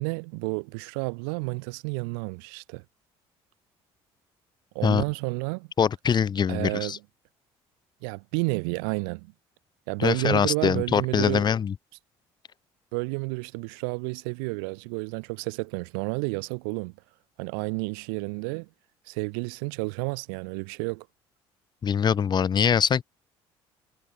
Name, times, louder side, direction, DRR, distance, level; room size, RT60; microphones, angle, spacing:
voice 1, 0.0-2.8 4.7-5.7 6.5-7.0 8.0-9.3 9.9-11.5 12.9-16.9 17.4-18.7 19.1-21.1, right 35 dB, 90° right, 5.1 m, -31 dB
voice 2, 5.8-7.0 10.0-11.7 21.8-23.0, left 7 dB, 40° left, 1.9 m, -23 dB
supercardioid pair, 85°, 11 cm